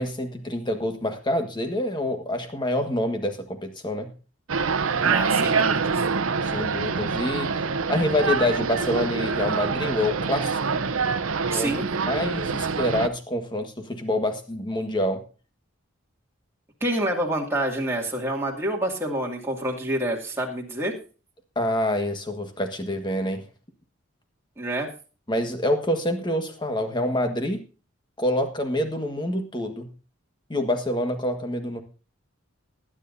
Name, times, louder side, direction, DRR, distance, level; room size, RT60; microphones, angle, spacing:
voice 1, 0.0-4.1 6.5-7.5 7.9-10.6 11.5-15.2 21.5-23.4 25.3-27.6 28.2-29.9 30.5-31.8, left 1 dB, 20° left, 5 dB, 1.5 m, -26 dB
sound 1, 4.5-13.1, right 5 dB, 80° right, 0.8 m, -25 dB
voice 2, 5.0-6.0 11.5-11.9 16.8-20.9 24.6-24.9, right 1 dB, 10° right, -2 dB, 2.3 m, -27 dB
19.5 x 10.0 x 2.7 m, 0.35 s
head